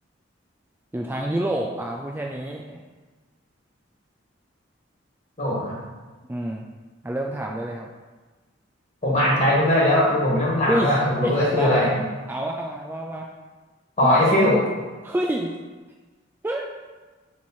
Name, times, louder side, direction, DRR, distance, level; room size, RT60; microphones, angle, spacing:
voice 1, 0.9-2.8 6.3-6.7 7.0-7.9 10.7-12.0 12.3-13.3 14.0-14.2 15.0-15.5 16.4-16.7, right 1 dB, 10° right, 0 dB, 0.3 m, -28 dB
voice 2, 5.4-5.8 9.0-11.9 14.0-14.6, left 1 dB, 35° left, -5 dB, 1.9 m, -20 dB
7.0 x 3.2 x 4.3 m, 1.3 s
head